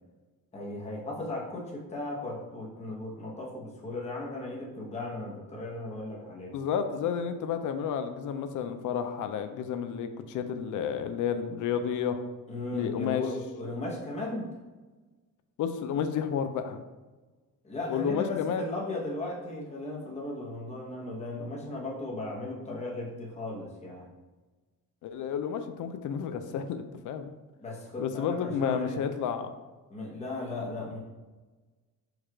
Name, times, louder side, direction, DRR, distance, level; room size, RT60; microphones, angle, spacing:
voice 1, 0.5-6.5 12.5-14.5 17.6-24.1 27.6-29.0 29.9-31.0, left 2 dB, 20° left, -3 dB, 0.8 m, -36 dB
voice 2, 6.5-12.2 12.7-13.2 15.6-16.8 17.9-18.6 25.0-27.3 28.0-29.5, left 7 dB, 60° left, 9 dB, 0.4 m, -31 dB
4.7 x 2.4 x 4.5 m, 1.3 s
cardioid pair, 145°, 36 cm